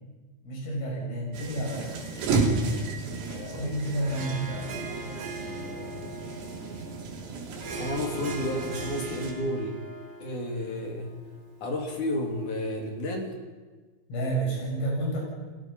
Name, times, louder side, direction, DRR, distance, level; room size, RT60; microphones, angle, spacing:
voice 1, 0.4-2.0 3.3-6.0 14.1-15.2, right 1 dB, 90° left, -2 dB, 9.9 m, -31 dB
sound 1, 1.3-9.3, right 3 dB, 65° right, 5.2 m, -33 dB
Harp, 3.9-12.6, right 2 dB, 45° right, 2.3 m, -41 dB
voice 2, 7.8-9.8 10.2-11.1 11.6-13.3, left 1 dB, 45° left, 2 dB, 3.3 m, -31 dB
30.0 x 21.0 x 5.9 m, 1.4 s
omnidirectional pair, 5.5 m